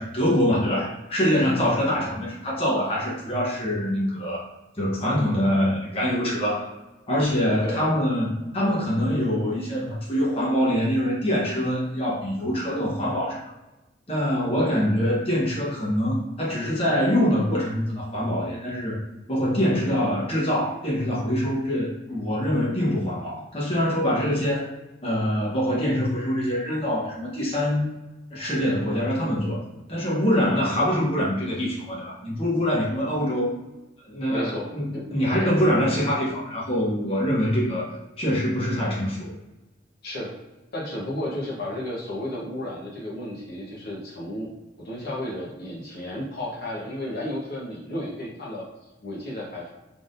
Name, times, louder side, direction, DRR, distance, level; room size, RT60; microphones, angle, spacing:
voice 1, 0.0-4.5 4.8-6.7 7.1-13.4 14.1-19.0 19.3-24.7 25.0-27.9 28.3-29.6 29.9-33.6 34.1-37.9 38.2-39.3, equal, 30° left, -6 dB, 1.0 m, -24 dB
voice 2, 34.3-35.1 35.4-35.5 40.0-40.3 40.7-44.5 44.8-48.6 49.0-49.7, left 1 dB, 55° left, -4 dB, 1.1 m, -33 dB
3.8 x 3.5 x 2.6 m, 1.1 s
head